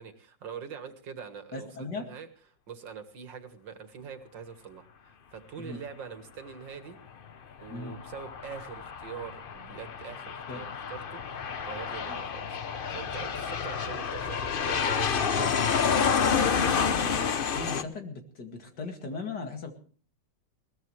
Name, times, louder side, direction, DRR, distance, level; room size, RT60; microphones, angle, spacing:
voice 1, 0.0-1.7 2.0-2.3 2.7-7.0 7.6-12.6 12.9-16.6, right 7 dB, 85° right, 8 dB, 2.4 m, -43 dB
voice 2, 1.5-2.0 5.6-5.8 7.7-8.0 10.5-10.7 12.1-12.2 17.0-19.7, left 3 dB, 65° left, 4 dB, 2.8 m, -38 dB
Aircraft, 7.6-17.8, left 6 dB, 50° left, 0.6 m, -29 dB
21.5 x 18.5 x 3.2 m, 0.42 s
omnidirectional pair, 1.9 m